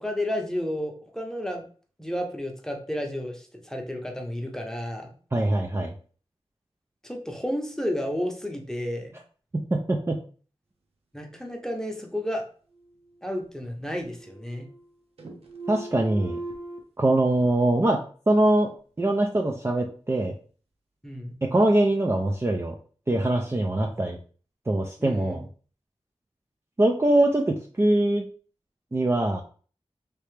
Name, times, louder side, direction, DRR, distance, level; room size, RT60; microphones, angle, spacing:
voice 1, 0.0-1.6 2.0-5.1 7.0-9.2 11.1-12.4 13.2-14.7 21.0-21.3 25.0-25.4, left 1 dB, 5° left, 2 dB, 0.8 m, -31 dB
voice 2, 5.3-5.9 9.5-10.2 15.7-16.4 17.0-18.7 19.0-20.4 21.4-22.8 23.1-24.2 24.7-25.4 26.8-28.3 28.9-29.4, right 1 dB, 25° right, 1 dB, 0.4 m, -23 dB
sound 1, 12.7-13.7 14.0-14.9 15.2-16.8, right 2 dB, 65° right, 0.9 m, -40 dB
3.3 x 2.8 x 3.3 m, 0.41 s
wide cardioid pair, 65°, 11 cm